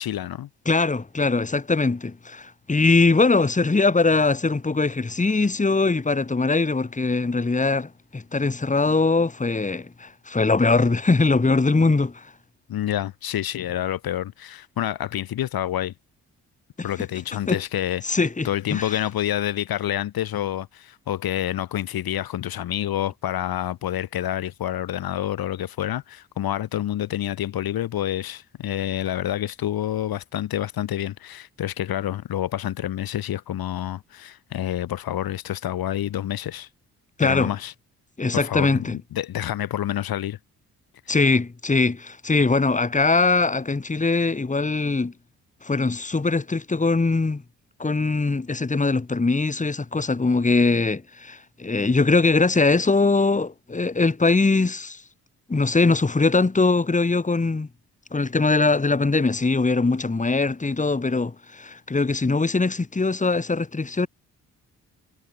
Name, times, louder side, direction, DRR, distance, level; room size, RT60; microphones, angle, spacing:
voice 1, 0.0-0.5 12.7-15.9 16.8-18.0 18.4-36.7 37.2-37.7 38.3-40.4, left 12 dB, 55° left, 1.6 m, -28 dB
voice 2, 0.7-12.2 17.5-17.6 18.0-18.9 37.2-37.5 38.2-39.0 41.1-45.1 45.6-47.4 47.8-55.0 55.5-57.7 58.1-64.1, left 3 dB, 15° left, 1.9 m, -21 dB
hypercardioid pair, 40°, 42 cm